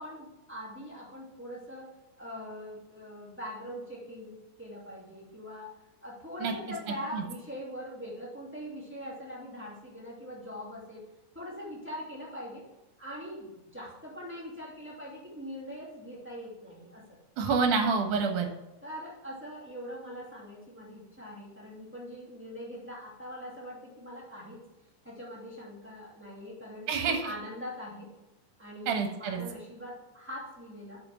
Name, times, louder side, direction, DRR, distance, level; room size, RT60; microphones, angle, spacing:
voice 1, 0.0-1.9 2.2-5.8 6.0-11.0 11.3-12.6 13.0-17.0 18.8-24.6 25.0-28.1 28.6-31.0, equal, 5° right, -6 dB, 2.4 m, -42 dB
voice 2, 17.4-18.5 26.9-27.2 28.9-29.4, right 5 dB, 75° right, 4 dB, 2.7 m, -27 dB
7.8 x 5.0 x 6.0 m, 1.0 s
omnidirectional pair, 3.6 m